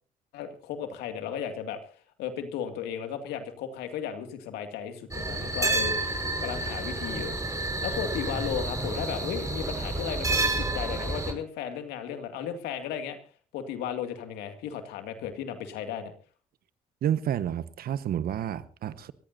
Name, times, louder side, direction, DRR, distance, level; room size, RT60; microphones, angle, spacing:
voice 1, 0.3-1.8 2.2-7.4 7.8-13.2 13.5-16.1, left 8 dB, 85° left, 7 dB, 2.3 m, -35 dB
sound 1, 5.1-11.3, right 2 dB, 20° right, 5.2 m, -30 dB
voice 2, 17.0-19.1, right 10 dB, 65° right, 15 dB, 1.2 m, -30 dB
28.0 x 15.0 x 2.7 m, 0.38 s
supercardioid pair, 55°, 16 cm